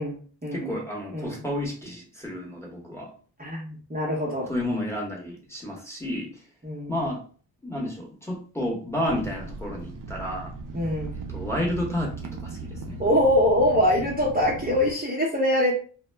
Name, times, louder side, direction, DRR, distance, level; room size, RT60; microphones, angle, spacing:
voice 1, 0.0-0.7 1.1-1.4 3.4-4.5 6.6-6.9 10.7-11.1 13.0-15.7, left 1 dB, 20° right, -6 dB, 0.7 m, -24 dB
voice 2, 0.5-3.1 4.5-6.4 6.9-7.2 7.6-10.5 11.3-13.0, left 1 dB, 5° left, -2 dB, 1.0 m, -31 dB
sound 1, 9.0-14.9, right 3 dB, 45° right, 0.5 m, -37 dB
2.1 x 2.0 x 3.3 m, 0.41 s
cardioid pair, 70°, 45 cm